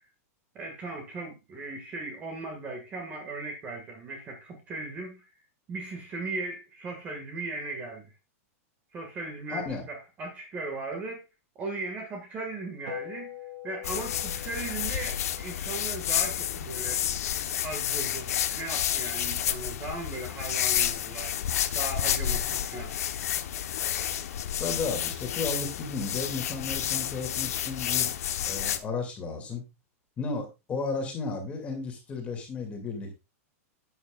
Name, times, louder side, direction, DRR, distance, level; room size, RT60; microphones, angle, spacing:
voice 1, 0.6-5.2 5.7-8.1 8.9-11.2 11.6-13.4 13.6-17.0 17.6-22.9, right 3 dB, 20° right, 1.8 m, -37 dB
voice 2, 9.5-9.8 24.6-28.1 28.4-29.6 30.2-33.2, left 4 dB, 15° left, 2.4 m, -34 dB
sound 1, 12.9-17.5, left 9 dB, 75° right, 6.7 m, -45 dB
sound 2, 13.8-28.8, left 10 dB, 75° left, 1.0 m, -30 dB
11.5 x 9.2 x 2.4 m
supercardioid pair, 175°, 8 cm